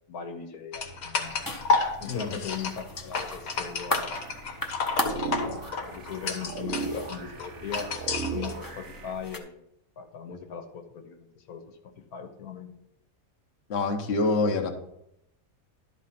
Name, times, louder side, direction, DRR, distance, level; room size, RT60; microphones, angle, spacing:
voice 1, 0.1-1.5 2.0-4.1 5.0-7.9 8.2-9.5 10.0-11.6 12.1-12.7, left 7 dB, 85° left, 5 dB, 1.5 m, -39 dB
sound 1, 0.7-8.5, left 4 dB, 70° left, 1.5 m, -31 dB
sound 2, 1.2-9.4, left 1 dB, 20° left, 0.7 m, -38 dB
voice 2, 2.1-2.4 10.3-10.4 13.7-14.7, left 3 dB, 50° left, 4 dB, 1.2 m, -26 dB
sound 3, 4.1-9.1, right 4 dB, 70° right, 1.2 m, -37 dB
11.5 x 4.2 x 5.7 m, 0.81 s
omnidirectional pair, 1.5 m